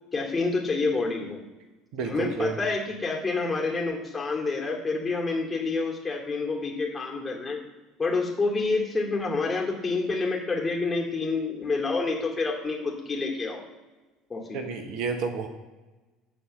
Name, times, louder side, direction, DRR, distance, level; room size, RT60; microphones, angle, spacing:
voice 1, 0.1-1.4 2.0-7.6 8.0-13.6 14.3-14.6, left 3 dB, 20° left, -1 dB, 2.6 m, -28 dB
voice 2, 1.9-2.5 14.5-15.5, right 5 dB, 55° right, 6 dB, 1.0 m, -30 dB
9.2 x 4.3 x 6.7 m, 1.2 s
figure-of-eight pair, 65°, 0 cm